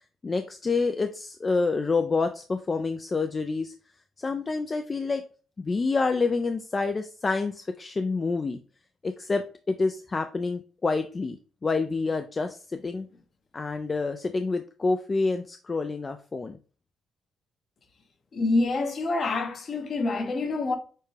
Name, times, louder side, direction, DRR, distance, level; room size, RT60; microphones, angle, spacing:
voice 1, 0.2-3.7 4.2-5.2 5.6-8.6 9.0-11.4 11.6-13.1 13.5-16.6, left 3 dB, 30° left, 0.4 m, -28 dB
voice 2, 18.3-20.8, left 3 dB, 50° left, 1.0 m, -26 dB
6.6 x 2.3 x 3.2 m
cardioid pair, 90°, 0 cm